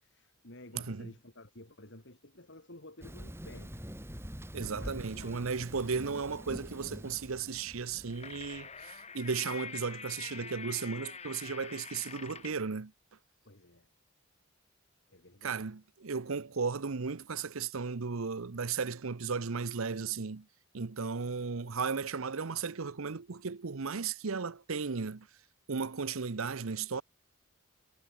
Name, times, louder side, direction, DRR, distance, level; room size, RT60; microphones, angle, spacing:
voice 1, 0.0-3.9 4.7-5.8 13.4-13.9 15.1-15.7, left 1 dB, 55° left, 4.4 m, -53 dB
voice 2, 0.7-1.1 4.5-12.9 15.4-20.4 20.7-25.3 25.7-27.0, right 5 dB, 70° right, 0.8 m, -35 dB
Thunder, 3.0-8.4, equal, 10° right, 4.1 m, -45 dB
sound 1, 7.8-12.7, left 6 dB, 30° left, 2.7 m, -45 dB
head